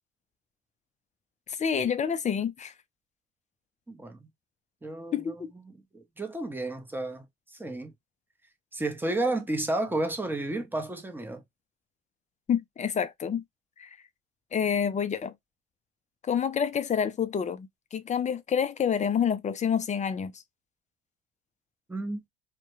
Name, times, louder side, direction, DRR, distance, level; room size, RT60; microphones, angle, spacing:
voice 1, 1.6-2.7 5.1-5.5 12.5-13.4 13.8-13.9 14.5-15.3 16.2-20.3, left 7 dB, 25° left, 0.4 m, -28 dB
voice 2, 3.9-4.3 4.8-5.3 5.9-7.3 7.5-7.9 8.7-11.4 21.9-22.2, right 2 dB, 5° right, 0.7 m, -31 dB
2.2 x 2.2 x 3.0 m
supercardioid pair, 80°, 30 cm